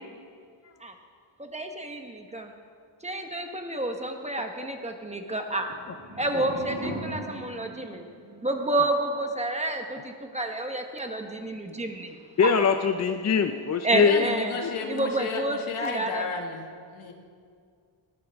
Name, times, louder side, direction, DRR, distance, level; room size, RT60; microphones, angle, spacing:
voice 1, 1.4-2.5 3.0-5.7 6.2-8.0 8.4-12.2 12.4-12.5 13.8-14.6 14.9-16.3, right 2 dB, 15° right, 4 dB, 1.1 m, -29 dB
sound 1, 5.6-8.7, right 2 dB, 35° right, 4.3 m, -39 dB
voice 2, 12.4-14.2 14.6-14.7, left 6 dB, 35° left, 7 dB, 0.5 m, -23 dB
voice 3, 14.0-16.7 16.9-17.1, left 4 dB, 85° left, 2 dB, 2.0 m, -32 dB
20.0 x 14.0 x 3.5 m, 2.2 s
wide cardioid pair, 135°, 48 cm